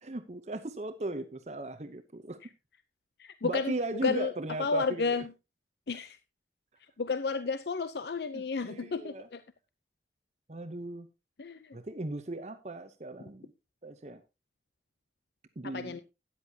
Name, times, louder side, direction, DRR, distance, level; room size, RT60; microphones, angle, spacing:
voice 1, 0.0-2.4 3.4-5.2 8.3-9.3 10.5-11.1 11.7-13.5 13.8-14.2 15.6-16.0, right 2 dB, 40° right, 9 dB, 0.8 m, -37 dB
voice 2, 3.2-3.7 4.0-4.3 4.6-5.3 5.9-6.2 7.0-9.4 11.4-11.8 15.7-16.0, left 4 dB, 70° left, 13 dB, 0.6 m, -31 dB
13.0 x 9.9 x 2.8 m, 0.26 s
head